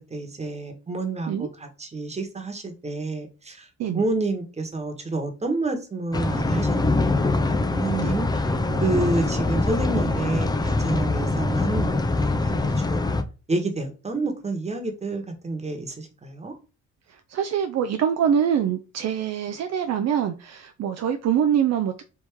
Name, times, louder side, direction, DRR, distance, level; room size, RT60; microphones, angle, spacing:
voice 1, 0.1-3.7 3.9-8.5 8.8-13.1 13.5-16.5, right 2 dB, 20° right, 1.3 m, -29 dB
sound 1, 6.1-13.2, left 2 dB, 15° left, 0.4 m, -23 dB
voice 2, 17.1-22.0, right 8 dB, 60° right, 0.5 m, -24 dB
3.5 x 2.8 x 4.5 m
cardioid pair, 90°, 30 cm